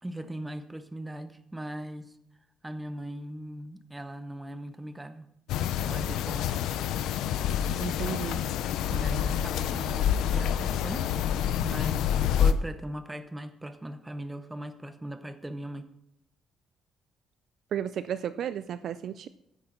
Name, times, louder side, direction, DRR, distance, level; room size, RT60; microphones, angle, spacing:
voice 1, 0.0-2.1 2.6-5.3 5.8-6.5 8.9-11.1 11.6-15.9, right 1 dB, 5° right, 10 dB, 0.7 m, -39 dB
sound 1, 5.5-12.5, left 9 dB, 85° left, 0.6 m, -27 dB
voice 2, 7.8-8.4 17.7-19.3, right 9 dB, 50° right, 13 dB, 0.3 m, -33 dB
12.5 x 10.0 x 3.8 m, 0.79 s
cardioid pair, 175°, 0 cm